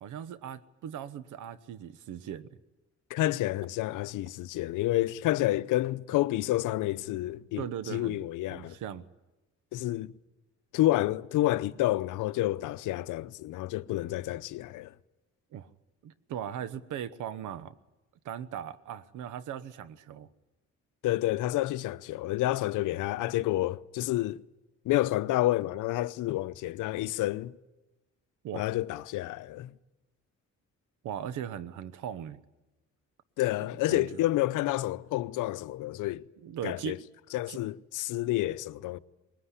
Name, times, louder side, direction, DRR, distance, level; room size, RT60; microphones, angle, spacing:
voice 1, 0.0-2.5 7.6-8.2 8.5-9.1 13.8-13.9 15.5-15.7 16.0-17.7 18.2-20.3 28.4-28.7 31.0-32.4 33.9-34.1 36.4-37.0 37.5-37.6, right 9 dB, 80° right, 1.1 m, -38 dB
voice 2, 3.1-8.8 9.7-10.1 10.7-14.9 21.0-24.4 24.8-27.5 28.5-29.7 33.4-36.2 36.6-37.0 37.3-39.0, left 16 dB, 90° left, 0.7 m, -29 dB
20.5 x 19.0 x 10.0 m
cardioid pair, 90°, 30 cm